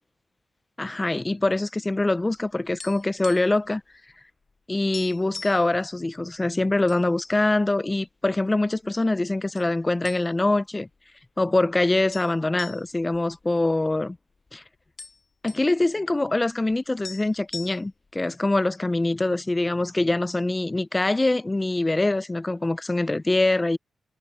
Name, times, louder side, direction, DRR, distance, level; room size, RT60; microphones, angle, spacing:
voice 1, 0.8-3.8 4.7-10.9 11.4-14.2 14.5-14.6 15.4-23.8, left 2 dB, 20° left, 0.4 m, -24 dB
sound 1, 2.4-3.7 3.9-4.1 4.5-4.6 4.9-5.7 6.3-7.0 7.4-7.5 8.2-8.9 9.5-9.7 10.0-10.6 10.9-11.0 12.1-14.2 14.5-14.6 14.8-15.7 16.7-16.8 17.0-18.1, left 4 dB, 40° left, 2.1 m, -41 dB
cardioid pair, 105°, 0 cm